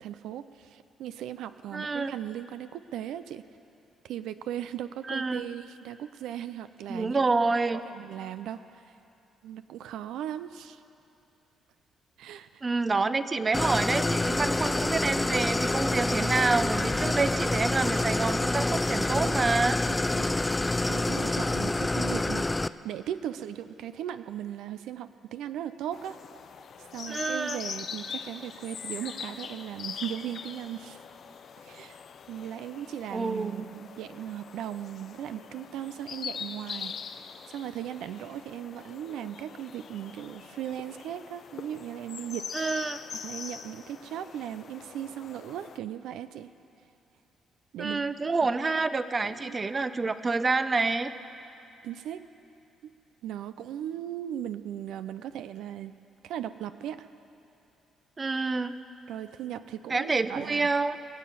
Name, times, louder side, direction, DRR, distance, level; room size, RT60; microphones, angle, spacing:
voice 1, 0.0-3.4 4.0-7.2 7.7-8.9 9.4-10.8 12.2-12.6 19.9-20.3 20.9-26.2 26.8-31.0 31.6-36.9 37.5-42.5 43.2-46.5 47.7-48.0 49.2-49.6 51.8-52.3 52.8-52.9 53.2-55.9 56.2-57.1 59.1-60.7, right 11 dB, 85° right, 12 dB, 0.4 m, -38 dB
voice 2, 1.7-2.1 5.1-5.4 6.9-7.8 12.6-19.8 27.1-27.6 33.1-33.7 42.5-43.0 47.8-51.1 58.2-58.8 59.9-61.0, right 3 dB, 30° right, 12 dB, 0.6 m, -28 dB
Idling, 13.5-22.7, left 2 dB, 15° left, 0.3 m, -27 dB
sound 1, 25.9-45.8, left 7 dB, 60° left, 0.7 m, -42 dB
22.5 x 7.5 x 6.9 m, 2.8 s
cardioid pair, 90°, 0 cm